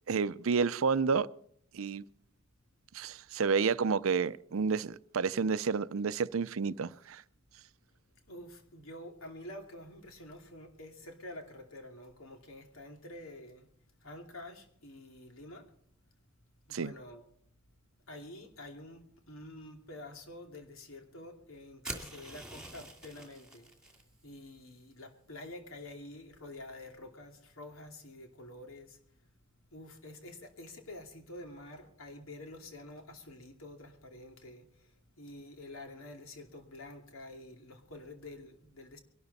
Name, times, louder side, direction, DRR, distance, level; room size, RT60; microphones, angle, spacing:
voice 1, 0.1-1.3 1.7-2.0 2.9-7.2 16.7-16.9, right 5 dB, 80° right, 0.5 m, -30 dB
voice 2, 8.3-13.7 14.0-15.7 16.7-17.2 18.1-23.7 24.2-29.0 29.7-39.0, left 1 dB, 90° left, 2.6 m, -48 dB
sound 1, 21.8-24.0, right 2 dB, 5° right, 2.4 m, -45 dB
23.0 x 12.0 x 4.1 m
head